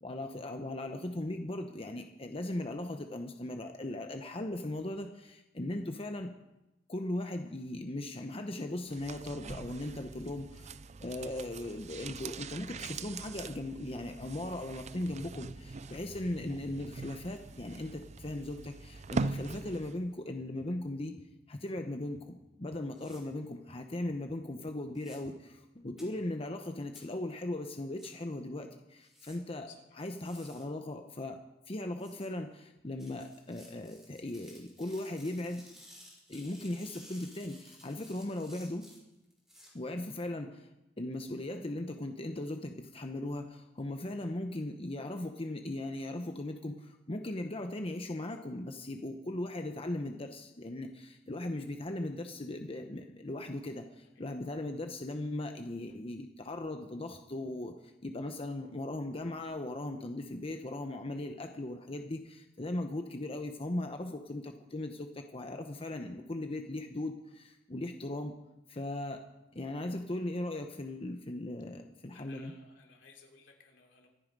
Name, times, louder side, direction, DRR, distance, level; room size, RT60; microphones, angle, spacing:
voice 1, 0.0-6.3 6.9-21.2 21.5-29.7 30.0-31.4 31.7-35.6 36.3-38.9 39.7-40.7 41.0-57.7 58.0-68.3 68.7-69.2 69.5-72.5, left 1 dB, 30° left, 5 dB, 0.9 m, -38 dB
sound 1, 8.9-20.1 20.3-20.4, right 4 dB, 40° right, 0.5 m, -42 dB
voice 2, 15.9-16.3 29.7-29.8 54.1-54.3 72.1-74.1, left 5 dB, 80° left, 1 dB, 3.1 m, -58 dB
sound 2, 20.0-25.4, equal, 85° right, 5.2 m, -64 dB
sound 3, 23.0-23.2 24.9-25.2 26.0-26.1 27.0-27.1 28.0-28.1 29.0-29.4 30.0-30.6 32.0-32.3 33.0-39.7, equal, ahead, 6.1 m, -56 dB
24.5 x 9.5 x 5.3 m, 0.94 s
head